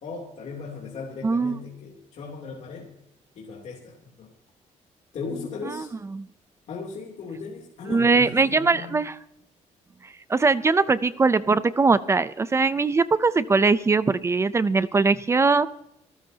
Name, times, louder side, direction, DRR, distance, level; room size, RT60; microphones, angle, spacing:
voice 1, 0.0-2.9 3.3-4.3 5.1-5.9 6.7-9.0, left 4 dB, 60° left, -2 dB, 3.0 m, -37 dB
voice 2, 1.2-1.6 5.7-5.8 6.1-6.3 7.9-9.2 10.3-15.7, right 4 dB, 20° right, 15 dB, 0.5 m, -21 dB
27.5 x 13.0 x 2.8 m, 0.80 s
cardioid pair, 160°, 13 cm